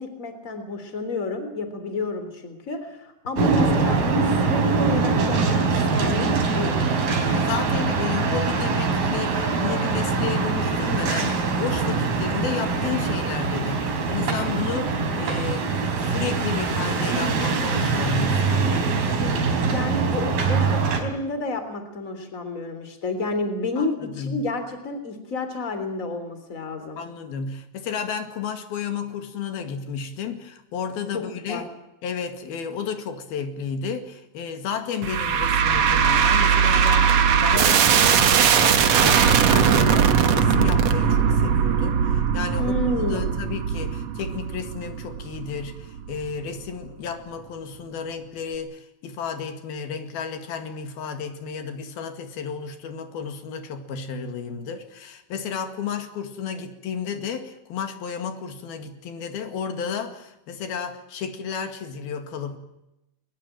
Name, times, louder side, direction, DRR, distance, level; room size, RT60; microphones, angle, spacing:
voice 1, 0.0-6.9 19.7-27.0 31.1-31.7 42.6-43.4, left 2 dB, 20° left, 8 dB, 3.5 m, -30 dB
sound 1, 3.4-21.0, right 4 dB, 85° right, 5.4 m, -23 dB
voice 2, 7.3-15.7 16.0-19.7 23.8-24.5 27.0-31.7 32.0-62.6, left 6 dB, 85° left, 7 dB, 4.0 m, -32 dB
sound 2, 35.0-46.3, right 7 dB, 55° right, 2.2 m, -20 dB
21.5 x 21.5 x 9.1 m, 0.89 s
omnidirectional pair, 4.2 m